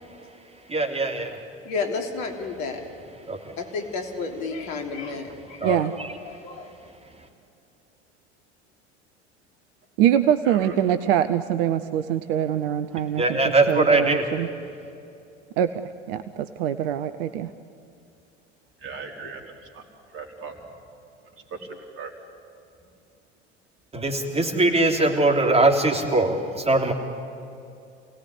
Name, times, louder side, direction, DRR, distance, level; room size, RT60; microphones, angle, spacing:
voice 1, 0.7-1.4 3.3-3.5 5.6-5.8 13.2-14.2 23.9-26.9, right 2 dB, 15° right, 2 dB, 3.5 m, -21 dB
voice 2, 1.6-2.8 3.6-5.9 6.3-6.7, left 4 dB, 50° left, 3 dB, 3.3 m, -31 dB
voice 3, 5.6-5.9 10.0-13.4 13.7-14.5 15.6-15.7 16.1-17.5, right 10 dB, 55° right, 11 dB, 0.9 m, -23 dB
voice 4, 18.8-19.8 20.1-20.6 21.5-22.1, right 4 dB, 40° right, 3 dB, 4.4 m, -38 dB
28.0 x 18.0 x 9.9 m, 2.6 s
figure-of-eight pair, 75°, 35 cm